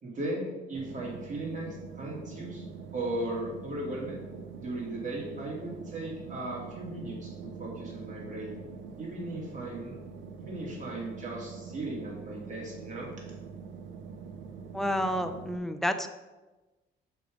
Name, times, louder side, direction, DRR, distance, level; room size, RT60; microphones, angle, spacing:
voice 1, 0.0-2.6 2.9-4.2 4.6-8.5 9.0-10.0 10.4-13.1, right 1 dB, 40° right, -3 dB, 2.1 m, -37 dB
sound 1, 0.7-15.6, right 5 dB, 75° right, 0.8 m, -44 dB
voice 2, 14.7-16.1, equal, ahead, 7 dB, 0.5 m, -29 dB
6.7 x 3.6 x 5.0 m, 1.1 s
cardioid pair, 90°, 20 cm